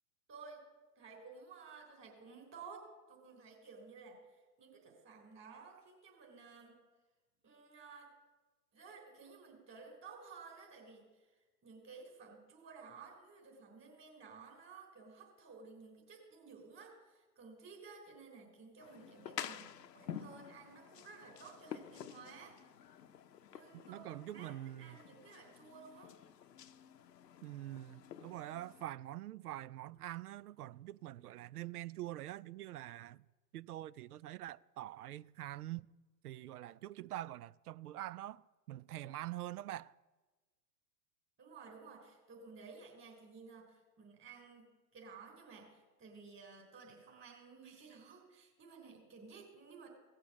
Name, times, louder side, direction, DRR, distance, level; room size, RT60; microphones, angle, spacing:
voice 1, 0.3-0.7 1.0-6.8 7.4-8.1 8.7-11.4 11.6-22.6 23.5-26.1 41.4-49.9, right 5 dB, 25° right, 3.5 m, -55 dB
sound 1, 18.8-28.8, left 9 dB, 80° left, 0.8 m, -50 dB
voice 2, 23.7-25.0 27.4-33.2 33.5-35.9 36.2-39.9, right 14 dB, 65° right, 0.5 m, -45 dB
17.0 x 6.8 x 7.2 m
hypercardioid pair, 115°, 49 cm